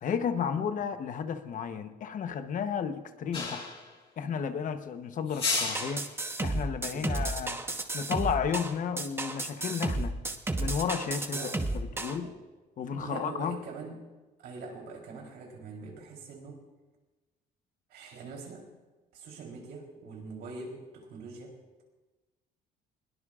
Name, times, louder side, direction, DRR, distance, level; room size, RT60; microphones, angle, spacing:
voice 1, 0.0-3.7 4.2-6.0 6.4-7.6 7.9-10.2 10.6-12.3 12.8-13.6, left 7 dB, 50° left, 9 dB, 1.0 m, -33 dB
sound 1, 3.3-3.9 5.3-6.1, left 4 dB, 35° left, 6.0 m, -32 dB
sound 2, 5.5-12.2, right 2 dB, 15° right, 1.1 m, -32 dB
voice 2, 6.9-7.3 11.3-11.6 12.2-12.4 13.0-14.0 14.4-16.6 17.9-18.7 19.1-21.6, right 4 dB, 75° right, 0 dB, 3.7 m, -43 dB
21.0 x 18.0 x 2.5 m, 1.2 s
cardioid pair, 110°, 17 cm